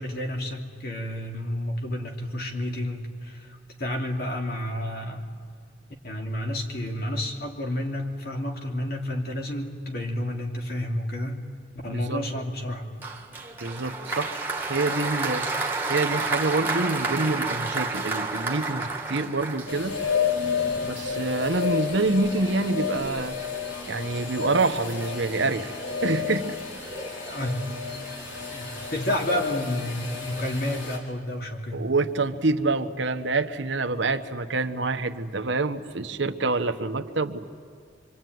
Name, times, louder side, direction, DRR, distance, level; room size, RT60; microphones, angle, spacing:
voice 1, 0.0-5.3 6.0-11.5 11.8-12.9 27.3-27.7 28.5-31.8, left 1 dB, 50° left, 2 dB, 2.9 m, -30 dB
voice 2, 11.9-12.2 13.6-14.4 14.7-15.4 15.9-20.0 20.8-23.4 23.9-25.7 26.0-26.6 31.7-37.4, right 3 dB, 70° right, 8 dB, 1.1 m, -26 dB
Applause, 13.0-20.1, right 3 dB, 10° right, 1.8 m, -30 dB
sound 1, 19.7-31.0, left 6 dB, 85° left, 4.9 m, -31 dB
25.5 x 25.0 x 9.4 m, 2.2 s
head